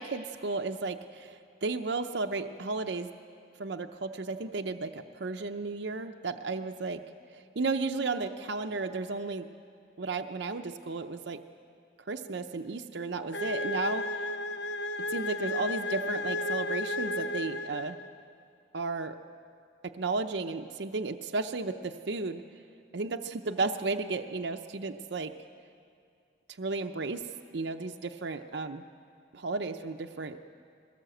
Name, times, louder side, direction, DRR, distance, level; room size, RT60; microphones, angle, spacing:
voice 1, 0.0-3.1 3.6-7.0 7.6-9.5 10.0-11.4 12.1-14.3 15.1-18.0 18.7-19.2 19.8-22.4 22.9-25.3 26.6-27.2 27.5-28.8 29.3-30.4, right 3 dB, 65° right, 6 dB, 0.6 m, -33 dB
sound 1, 13.3-18.2, left 1 dB, 65° left, 0.8 m, -33 dB
21.5 x 18.5 x 7.8 m, 2.4 s
head